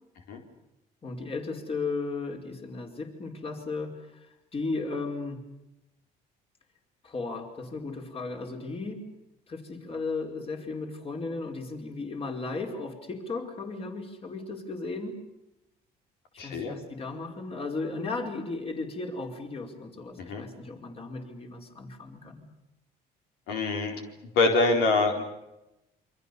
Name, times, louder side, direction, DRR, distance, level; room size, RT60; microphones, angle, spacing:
voice 1, 1.0-4.0 4.5-5.4 7.0-9.0 9.5-15.2 16.3-22.4, left 3 dB, 35° left, 3 dB, 4.9 m, -35 dB
voice 2, 16.4-16.8 20.2-20.4 23.5-24.0 24.4-25.2, left 3 dB, 85° left, 3 dB, 4.3 m, -25 dB
28.0 x 25.0 x 6.9 m, 0.92 s
cardioid pair, 110°, 17 cm